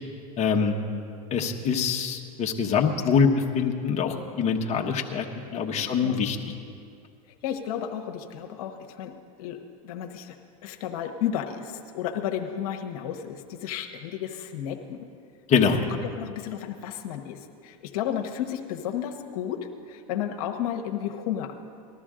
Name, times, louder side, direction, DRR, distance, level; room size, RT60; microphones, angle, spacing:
voice 1, 0.4-0.8 1.3-3.3 3.5-5.3 5.5-6.4 15.5-15.8, left 6 dB, 35° left, 2 dB, 1.2 m, -24 dB
voice 2, 5.5-6.2 7.4-9.1 9.4-9.6 9.8-10.4 10.6-15.1 16.2-21.5, left 9 dB, 75° left, 3 dB, 1.1 m, -33 dB
19.5 x 13.0 x 3.8 m, 2.3 s
supercardioid pair, 115°, 19 cm